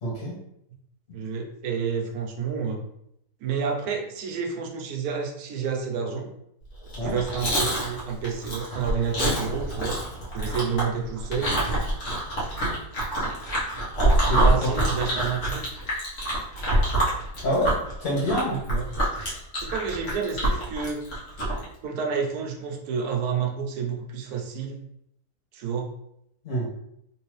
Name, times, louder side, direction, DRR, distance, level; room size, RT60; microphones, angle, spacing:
voice 1, 0.0-0.4 1.1-1.2 7.0-7.2 14.3-14.7 17.4-17.7 18.0-18.6 26.4-26.7, equal, 65° left, -5 dB, 2.1 m, -26 dB
voice 2, 1.1-2.8 3.4-6.3 7.0-10.0 10.3-11.5 14.4-15.6 18.7-18.9 19.6-21.0 21.8-24.8 25.5-25.9, right 6 dB, 80° right, 2 dB, 1.2 m, -29 dB
Chewing mastication, 6.8-21.6, right 1 dB, 45° left, 1.4 m, -26 dB
3.5 x 3.0 x 3.1 m, 0.77 s
omnidirectional pair, 1.6 m